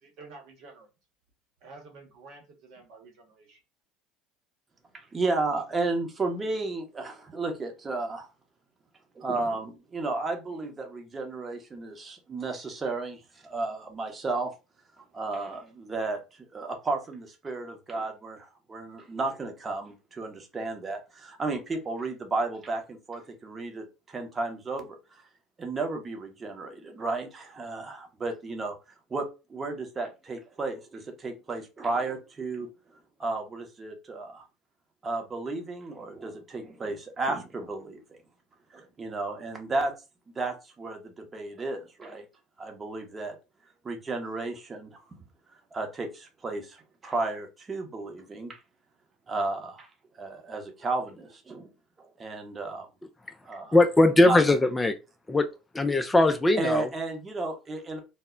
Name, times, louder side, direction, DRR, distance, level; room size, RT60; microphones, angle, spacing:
voice 1, 0.0-0.9 1.6-3.6, right 3 dB, 65° right, 0.9 m, -50 dB
voice 2, 4.9-8.3 9.1-14.5 15.0-25.2 25.6-28.7 29.1-32.7 33.2-34.4 35.0-38.2 38.7-39.9 40.3-42.3 42.6-43.3 43.8-45.2 45.7-48.6 49.3-49.9 50.1-51.7 52.0-52.9 53.4-53.8 54.2-54.4 56.6-58.0, right 3 dB, 30° right, 0.8 m, -33 dB
voice 3, 53.7-54.9 55.3-55.4 55.7-56.9, left 2 dB, 15° left, 0.3 m, -20 dB
2.1 x 2.0 x 3.6 m
hypercardioid pair, 70°, 0 cm